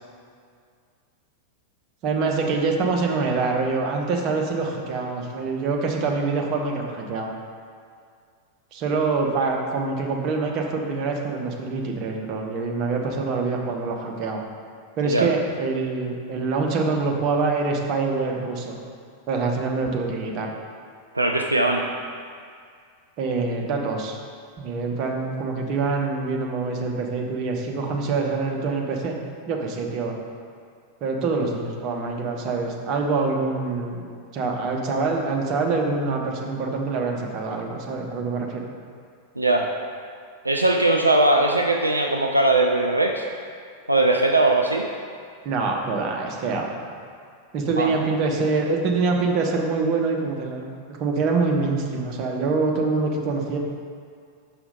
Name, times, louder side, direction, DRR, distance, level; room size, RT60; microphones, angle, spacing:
voice 1, 2.0-7.3 8.7-14.4 15.0-18.8 19.3-20.5 23.2-24.2 24.6-29.2 29.5-30.2 31.0-34.1 34.3-38.6 45.4-47.0 47.5-53.6, right 4 dB, 40° right, 1 dB, 1.0 m, -25 dB
voice 2, 21.1-21.8 39.4-39.7 40.4-43.2 43.9-44.9 47.8-47.9, right 2 dB, 85° right, 2 dB, 0.4 m, -20 dB
6.5 x 4.9 x 5.2 m, 2.2 s
figure-of-eight pair, 90°, 0 cm